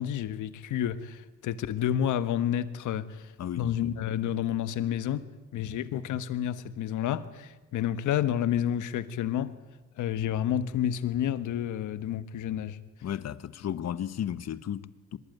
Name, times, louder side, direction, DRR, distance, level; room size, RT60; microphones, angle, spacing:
voice 1, 0.0-5.3 5.5-9.6 10.0-12.8, left 10 dB, 80° left, 1.4 m, -30 dB
voice 2, 3.4-3.9 13.0-15.2, left 10 dB, 60° left, 1.2 m, -34 dB
23.5 x 21.5 x 9.4 m
cardioid pair, 90°, 30 cm